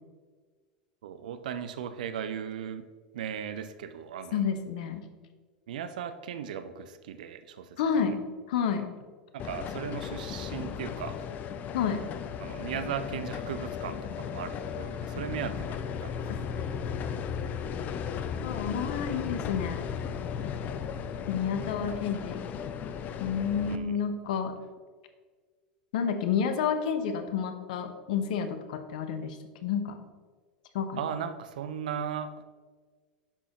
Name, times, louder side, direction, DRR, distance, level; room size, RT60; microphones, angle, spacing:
voice 1, 1.0-2.9 3.1-4.4 5.7-7.8 9.3-11.2 12.4-16.2 23.6-23.9 31.0-32.4, right 8 dB, 65° right, 11 dB, 0.5 m, -37 dB
voice 2, 4.3-5.1 7.8-8.2 8.5-8.9 11.7-12.0 16.3-16.4 18.4-19.8 21.3-22.5 23.2-24.5 25.9-30.0 30.7-31.0, left 7 dB, 60° left, 8 dB, 0.8 m, -30 dB
sound 1, 9.4-23.8, left 7 dB, 35° left, 0.5 m, -35 dB
10.0 x 6.1 x 3.0 m, 1.5 s
figure-of-eight pair, 80°, 5 cm